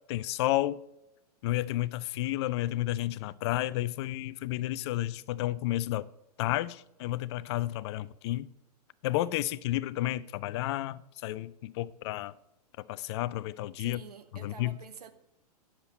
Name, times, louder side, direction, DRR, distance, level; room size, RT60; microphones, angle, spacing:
voice 1, 0.1-0.8 1.4-6.1 6.4-8.5 9.0-12.3 12.9-14.0 14.4-14.8, left 15 dB, 45° left, 0.4 m, -31 dB
voice 2, 13.8-15.1, right 7 dB, 75° right, 0.9 m, -48 dB
9.5 x 7.3 x 4.2 m
figure-of-eight pair, 105°, 20 cm